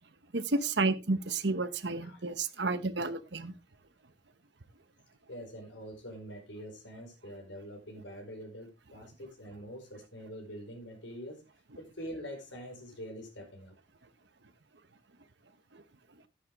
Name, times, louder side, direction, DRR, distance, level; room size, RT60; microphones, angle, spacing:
voice 1, 0.3-3.5 15.7-15.8, right 3 dB, 70° right, 1.0 m, -31 dB
voice 2, 5.3-11.4 11.8-13.7, equal, 80° left, 4.6 m, -45 dB
10.0 x 10.0 x 3.5 m
head